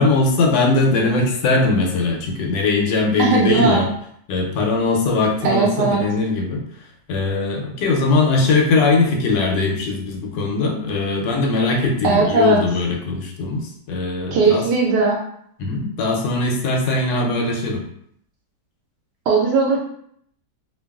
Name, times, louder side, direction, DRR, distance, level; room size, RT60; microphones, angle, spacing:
voice 1, 0.0-3.9 4.3-6.6 7.1-14.6 15.6-17.8, left 3 dB, 85° left, 1 dB, 1.3 m, -20 dB
voice 2, 3.2-3.8 5.4-6.0 12.0-12.6 14.3-15.2 19.3-19.8, right 4 dB, 75° right, -1 dB, 1.1 m, -18 dB
3.0 x 2.2 x 2.3 m, 0.68 s
omnidirectional pair, 1.9 m